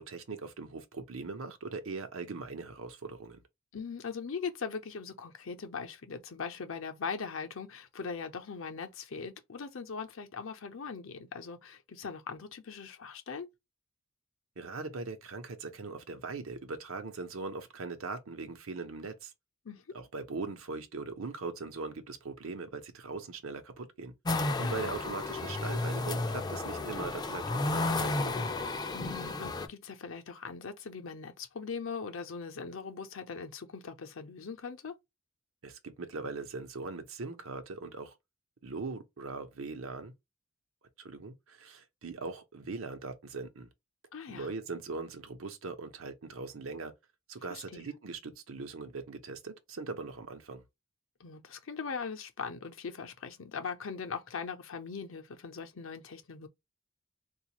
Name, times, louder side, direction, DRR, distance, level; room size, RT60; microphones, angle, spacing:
voice 1, 0.0-3.4 14.6-19.3 19.9-24.1 24.6-28.5 35.6-38.1 38.6-40.1 41.0-43.7 44.3-46.9 47.3-50.6, right 3 dB, 85° right, 0.8 m, -40 dB
voice 2, 3.7-13.5 19.6-20.0 24.6-25.0 28.9-35.0 44.1-44.5 47.5-47.8 51.2-56.5, left 5 dB, 70° left, 0.7 m, -40 dB
sound 1, 24.2-29.7, left 2 dB, 20° left, 0.4 m, -32 dB
3.9 x 2.4 x 2.9 m
head